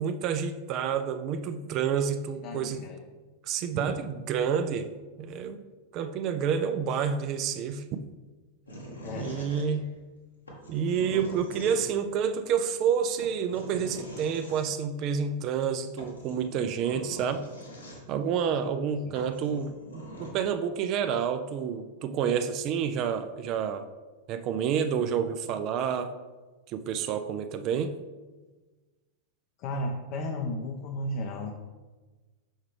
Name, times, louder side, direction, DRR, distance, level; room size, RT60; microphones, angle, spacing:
voice 1, 0.0-2.8 3.5-4.9 5.2-5.6 5.9-7.8 9.2-9.9 10.7-17.4 18.1-23.8 24.3-26.1 26.7-27.9, right 7 dB, 40° right, 9 dB, 0.4 m, -29 dB
voice 2, 2.4-3.0 9.0-9.8 19.0-19.1 29.6-31.5, left 1 dB, 45° left, 2 dB, 0.6 m, -34 dB
sound 1, 8.7-10.0 10.5-12.1 13.2-14.7 15.6-15.7 16.0-18.3 18.8-18.9 19.1-20.3, equal, 80° left, 1.3 m, -43 dB
6.4 x 4.7 x 3.2 m, 1.3 s
figure-of-eight pair, 90°, 0 cm